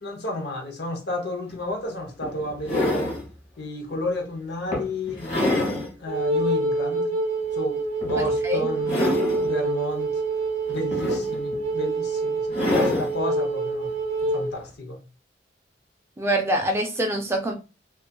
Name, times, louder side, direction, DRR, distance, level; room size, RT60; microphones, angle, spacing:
voice 1, 0.0-3.1 3.6-7.1 7.5-9.0 9.4-10.1 10.7-13.9 14.3-15.0, left 1 dB, 60° left, 0.7 m, -32 dB
sound 1, 1.5-1.6 2.2-3.3 3.9-4.1 4.7-5.9 6.4-6.5 8.0-8.4 8.8-9.5 10.7-11.6 12.5-13.1 14.5-14.6, left 2 dB, 40° left, 1.1 m, -26 dB
Wind instrument woodwind instrument, 6.1-14.5, right 2 dB, 40° right, 0.7 m, -26 dB
voice 2, 8.2-8.7 16.2-17.5, right 1 dB, 15° right, 0.3 m, -25 dB
2.6 x 2.3 x 2.2 m
head